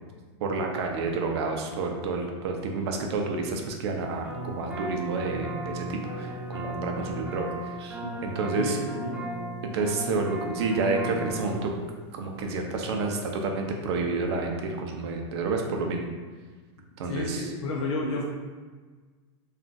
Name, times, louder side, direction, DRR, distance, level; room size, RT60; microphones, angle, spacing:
voice 1, 0.4-8.8 9.6-11.7 12.1-16.1 17.0-17.4, right 3 dB, 65° right, 2 dB, 0.5 m, -29 dB
sound 1, 4.2-11.6, right 1 dB, 10° right, 0.6 m, -36 dB
voice 2, 8.6-9.2 17.1-18.2, left 2 dB, 85° left, -2 dB, 0.5 m, -31 dB
2.4 x 2.3 x 3.8 m, 1.4 s
supercardioid pair, 160°, 15 cm